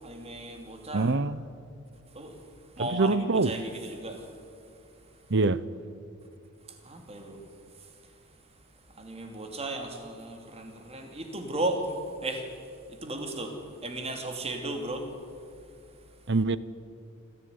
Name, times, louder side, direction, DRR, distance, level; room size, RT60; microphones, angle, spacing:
voice 1, 0.0-1.1 2.1-2.4 2.8-4.2 6.8-7.4 9.0-11.9 12.2-12.4 12.9-13.5 13.8-15.1, right 2 dB, 30° right, 2.9 m, -35 dB
voice 2, 0.9-1.5 2.8-3.5 5.3-5.6 16.3-16.6, right 3 dB, 55° right, 0.8 m, -24 dB
26.5 x 15.0 x 9.6 m
head